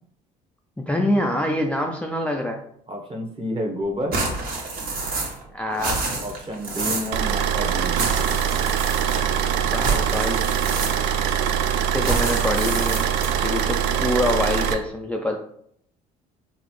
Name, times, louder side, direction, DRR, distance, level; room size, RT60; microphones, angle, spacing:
voice 1, 0.8-2.6 5.5-6.0 9.6-10.4 11.9-13.1 13.4-15.4, left 1 dB, 5° left, 1 dB, 0.4 m, -25 dB
voice 2, 2.9-4.2 6.2-8.0, equal, 30° right, 2 dB, 1.0 m, -30 dB
sound 1, 4.1-5.5 5.7-7.2 7.9-9.4 9.8-11.2 12.0-13.4, right 3 dB, 55° right, 1.3 m, -28 dB
sound 2, 7.1-14.7, right 8 dB, 80° right, 0.4 m, -23 dB
4.0 x 2.5 x 3.1 m, 0.68 s
supercardioid pair, 70°, 19 cm